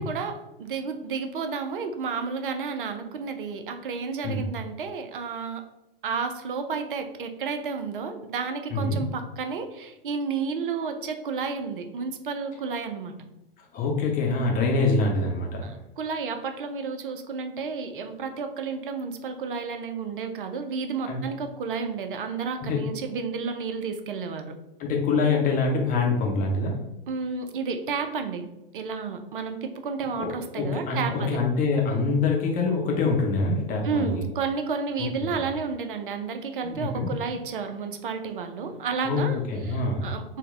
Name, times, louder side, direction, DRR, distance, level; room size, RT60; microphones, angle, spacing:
voice 1, 0.0-5.6 6.0-13.1 15.6-24.5 27.1-28.5 28.7-31.4 33.8-40.4, right 5 dB, 65° right, 7 dB, 0.6 m, -31 dB
voice 2, 13.7-15.7 21.1-21.2 22.6-22.8 24.8-26.8 30.2-34.2 35.3-35.4 36.6-37.1 39.0-40.1, left 3 dB, 30° left, 0 dB, 0.8 m, -25 dB
4.0 x 2.2 x 3.6 m, 0.92 s
figure-of-eight pair, 95°, 29 cm